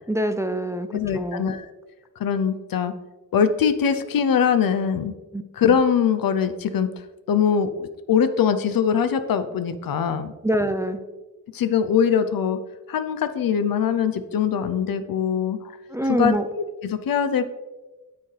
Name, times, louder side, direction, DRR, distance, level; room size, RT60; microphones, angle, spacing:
voice 1, 0.1-0.9 1.1-1.4 5.3-5.4 10.4-11.0 15.9-16.4, right 1 dB, 10° right, 8 dB, 0.5 m, -24 dB
voice 2, 0.9-1.7 2.2-2.9 3.3-5.1 5.5-6.9 7.3-10.3 11.5-12.6 12.9-15.6 16.2-17.5, left 7 dB, 75° left, 11 dB, 0.7 m, -22 dB
9.6 x 6.9 x 3.3 m, 1.2 s
wide cardioid pair, 95°, 35 cm